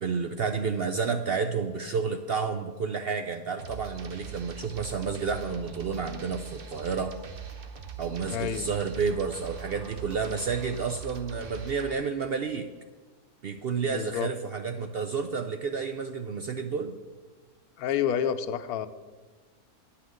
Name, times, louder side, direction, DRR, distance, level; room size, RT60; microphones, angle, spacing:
voice 1, 0.0-7.1 8.0-12.7 13.4-16.9, right 5 dB, 65° right, 6 dB, 0.6 m, -30 dB
sound 1, 3.6-11.9, right 6 dB, 45° right, 0.9 m, -42 dB
voice 2, 8.3-8.7 13.9-14.3 17.8-18.9, left 9 dB, 90° left, 12 dB, 1.1 m, -29 dB
9.8 x 5.8 x 7.6 m, 1.4 s
omnidirectional pair, 1.6 m